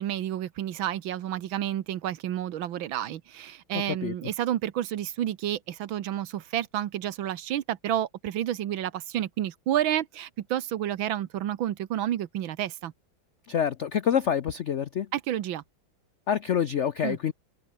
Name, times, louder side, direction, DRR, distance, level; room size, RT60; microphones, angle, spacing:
voice 1, 0.0-12.9 15.1-15.6 17.0-17.2, right 11 dB, 80° right, 1.8 m, -30 dB
voice 2, 13.5-15.1 16.3-17.3, left 8 dB, 75° left, 0.6 m, -26 dB
omnidirectional pair, 2.1 m